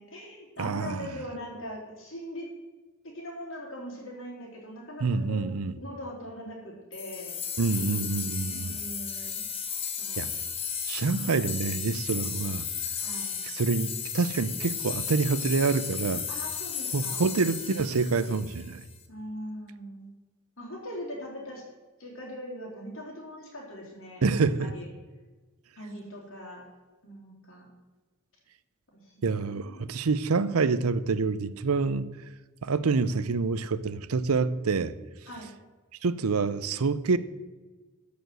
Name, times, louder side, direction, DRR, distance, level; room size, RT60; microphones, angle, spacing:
voice 1, 0.0-2.5 3.0-5.4 5.8-7.4 8.4-9.4 10.0-10.3 13.0-13.3 16.3-17.4 19.1-20.1 20.6-21.6 22.0-24.9 25.8-26.6 27.0-27.7 28.9-29.9 35.3-35.5, equal, 60° left, 3.7 m, -41 dB
voice 2, 0.6-1.1 5.0-5.7 7.6-8.8 10.2-10.3 10.9-12.7 13.4-16.2 16.9-18.8 24.2-24.7 29.2-32.1 32.6-34.9 36.0-37.2, right 4 dB, 85° right, 0.6 m, -27 dB
sound 1, 6.9-18.9, left 7 dB, 25° left, 1.0 m, -34 dB
12.5 x 5.2 x 7.7 m
head